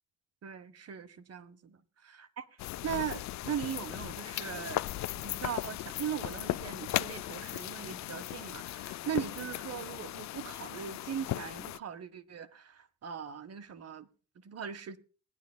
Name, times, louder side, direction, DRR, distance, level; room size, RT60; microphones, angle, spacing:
voice 1, 0.4-1.6 2.1-2.5 2.8-4.9 5.1-14.1 14.4-15.0, right 8 dB, 55° right, 1.4 m, -39 dB
sound 1, 2.6-11.8, left 15 dB, 65° left, 0.5 m, -37 dB
20.5 x 10.5 x 2.2 m
cardioid pair, 90°, 30 cm